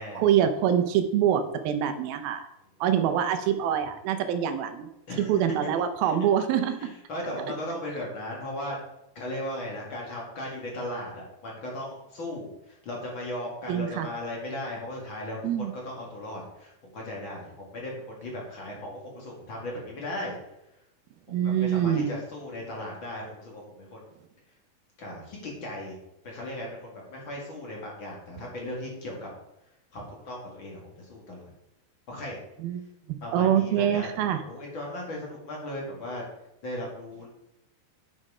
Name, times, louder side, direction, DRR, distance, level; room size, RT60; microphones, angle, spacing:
voice 1, 0.2-2.5 2.8-4.9 5.2-6.9 13.7-14.1 15.4-15.7 21.3-22.1 32.6-34.4, right 9 dB, 80° right, 8 dB, 2.2 m, -25 dB
voice 2, 5.1-5.5 6.0-6.2 6.8-8.8 9.2-15.4 15.8-20.4 21.3-24.0 25.0-26.0 26.2-29.3 29.9-31.4 32.1-32.4 33.2-36.2 36.6-37.3, left 1 dB, 40° left, -2 dB, 2.0 m, -37 dB
9.6 x 6.4 x 4.9 m, 0.88 s
omnidirectional pair, 5.0 m